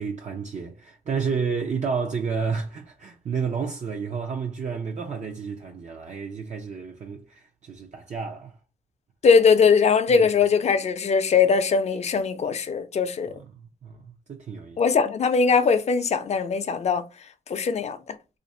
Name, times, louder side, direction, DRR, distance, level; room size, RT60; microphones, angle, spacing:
voice 1, 0.0-8.6 10.1-10.3 13.3-14.8, right 5 dB, 55° right, 0.5 m, -31 dB
voice 2, 9.2-13.3 14.8-17.0 17.5-18.2, left 5 dB, 50° left, 0.5 m, -20 dB
2.5 x 2.5 x 4.1 m
cardioid pair, 80°, 15 cm